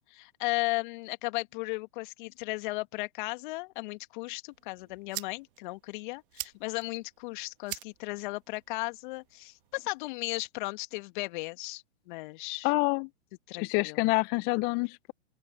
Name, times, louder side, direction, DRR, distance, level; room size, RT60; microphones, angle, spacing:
voice 1, 0.0-12.7 13.5-14.0, left 23 dB, 45° left, 2.1 m, -36 dB
sound 1, 4.5-10.5, right 17 dB, 50° right, 1.2 m, -46 dB
voice 2, 12.6-13.1 13.6-15.1, left 27 dB, 30° left, 0.7 m, -27 dB
open air
hypercardioid pair, 120°, 34 cm